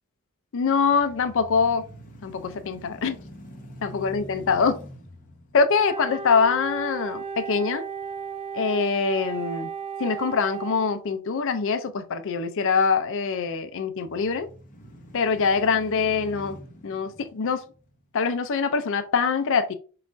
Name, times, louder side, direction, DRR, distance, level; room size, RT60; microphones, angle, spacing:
voice 1, 0.5-1.8 2.2-3.2 3.8-4.8 5.5-7.8 8.5-9.7 10.0-14.5 15.1-16.6 16.8-17.6 18.1-19.7, left 5 dB, 60° left, 0.5 m, -24 dB
sound 1, 0.7-8.8 9.3-9.4 13.9-18.4, left 1 dB, 40° left, 0.9 m, -46 dB
Wind instrument woodwind instrument, 5.7-10.9, right 6 dB, 25° right, 0.4 m, -34 dB
5.7 x 2.5 x 2.6 m
head